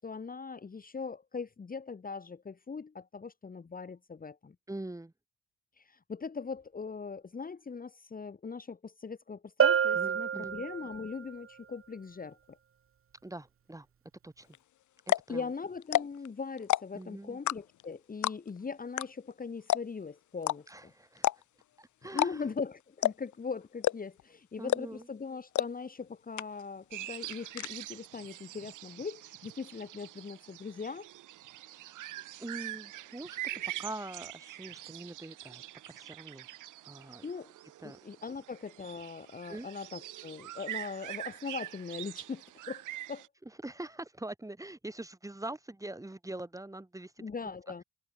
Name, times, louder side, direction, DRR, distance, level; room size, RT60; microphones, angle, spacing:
voice 1, 0.0-4.5 5.8-12.6 15.3-20.9 22.1-31.1 37.2-37.5 37.8-43.2 47.2-47.8, left 5 dB, 30° left, 1.7 m, -40 dB
voice 2, 4.7-5.1 9.9-10.5 13.2-13.9 14.2-14.5 15.3-15.5 16.9-17.4 20.7-21.3 21.8-22.4 24.6-25.1 32.4-33.4 33.8-36.5 36.8-37.3 37.8-38.0 39.5-39.7 43.4-47.3, right 1 dB, 10° right, 2.9 m, -43 dB
Bell, 9.6-11.2, right 8 dB, 45° right, 1.8 m, -27 dB
sound 1, 14.5-14.6 15.0-15.3 15.8-16.3 16.6-17.0 17.5-17.8 18.2-18.6 19.0-19.1 19.3-19.4 19.7-20.0 20.4-20.6 21.2-21.6 22.1-22.6 23.0-23.3 23.8-24.2 24.7-25.0 25.5-25.7 26.0-26.1 26.4-26.8 27.1-27.7, left 13 dB, 75° left, 1.5 m, -28 dB
sound 2, 26.9-43.3, right 14 dB, 85° right, 6.8 m, -44 dB
cardioid pair, 90°, 30 cm